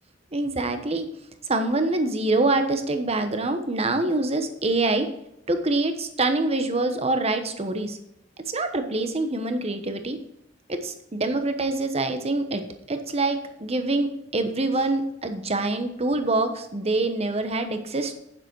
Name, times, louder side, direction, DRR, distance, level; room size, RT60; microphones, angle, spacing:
voice 1, 0.3-1.1 1.5-5.1 5.5-8.0 8.5-10.2 10.7-18.1, right 2 dB, 35° right, 7 dB, 1.0 m, -25 dB
9.0 x 7.5 x 4.6 m, 0.81 s
head